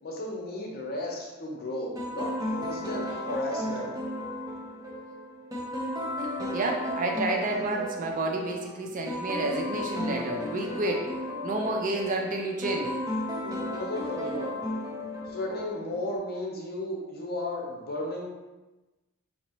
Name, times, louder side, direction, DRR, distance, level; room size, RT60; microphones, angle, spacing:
voice 1, 0.0-3.9 13.4-14.6 15.3-18.3, left 1 dB, 45° left, -2 dB, 0.8 m, -34 dB
sound 1, 2.0-16.2, left 1 dB, 15° right, 0.8 m, -34 dB
voice 2, 6.5-11.1 11.4-12.9, right 2 dB, 35° right, 1 dB, 0.4 m, -30 dB
5.2 x 2.8 x 2.9 m, 1.1 s
head